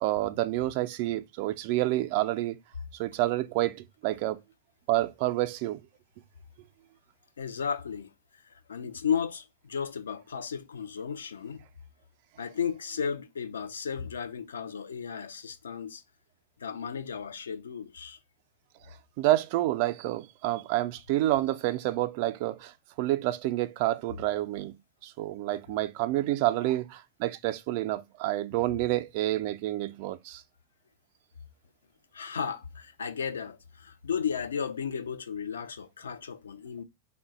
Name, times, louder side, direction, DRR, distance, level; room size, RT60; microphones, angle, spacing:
voice 1, 0.0-2.6 3.0-4.4 4.9-5.8 19.2-22.7 23.0-24.7 25.0-30.4, right 16 dB, 45° right, 0.3 m, -28 dB
voice 2, 7.4-8.1 8.5-11.6 12.4-16.0 16.6-18.2 32.1-36.8, left 7 dB, 70° left, 0.4 m, -34 dB
3.7 x 2.1 x 3.6 m
figure-of-eight pair, 90°, 0 cm